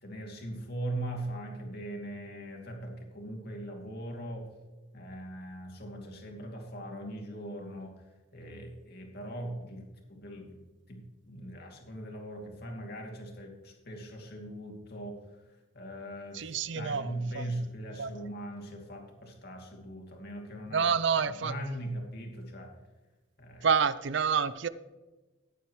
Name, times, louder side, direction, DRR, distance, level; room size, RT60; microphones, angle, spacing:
voice 1, 0.0-4.5 4.9-8.1 8.3-10.6 10.9-20.9 21.4-22.8 23.4-23.7, right 1 dB, 50° left, 1 dB, 2.6 m, -40 dB
voice 2, 16.4-17.0 17.4-17.5 18.0-18.1 20.7-21.5 23.6-24.7, right 6 dB, 60° right, 15 dB, 0.5 m, -27 dB
16.0 x 10.0 x 3.1 m, 1.2 s
head